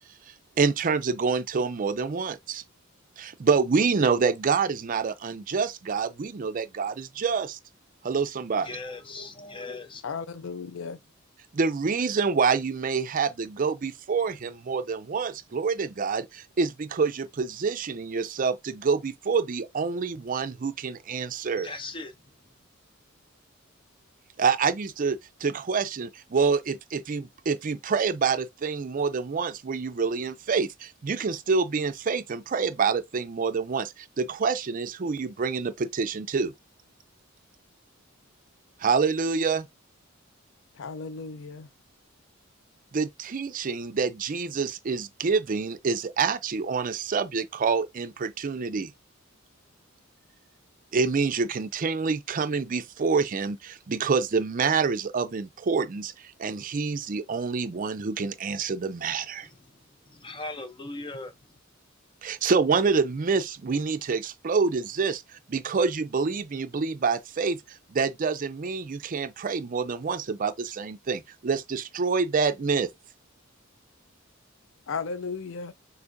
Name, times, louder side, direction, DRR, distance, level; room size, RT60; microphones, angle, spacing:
voice 1, 0.6-2.6 3.2-7.6 8.0-8.7 11.5-21.7 24.4-36.5 38.8-39.7 42.9-48.9 50.9-59.5 62.2-72.9, right 5 dB, 40° right, 0.4 m, -27 dB
voice 2, 8.6-10.0 21.6-22.2 59.4-59.5 60.1-61.3, left 2 dB, 25° left, 0.6 m, -38 dB
voice 3, 10.0-11.0 40.8-41.7 74.9-75.7, left 5 dB, 65° left, 0.5 m, -35 dB
6.4 x 2.6 x 2.5 m
head